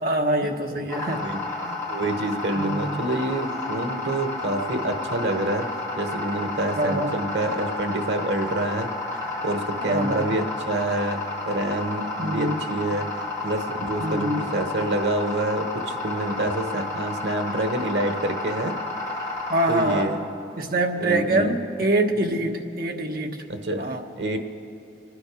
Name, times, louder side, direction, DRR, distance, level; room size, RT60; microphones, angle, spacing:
voice 1, 0.0-1.2 2.5-3.0 6.8-7.1 9.8-10.3 12.2-12.6 14.0-14.4 19.5-20.1 20.6-23.3 23.8-24.0, right 1 dB, 55° right, 2 dB, 1.2 m, -24 dB
sound 1, 0.9-20.0, left 2 dB, 20° left, 2.1 m, -31 dB
voice 2, 1.1-5.7 6.0-18.8 19.7-20.2 21.0-21.5 23.5-23.9 24.2-24.4, right 1 dB, 90° right, 6 dB, 1.1 m, -27 dB
25.5 x 9.8 x 4.9 m, 2.8 s
head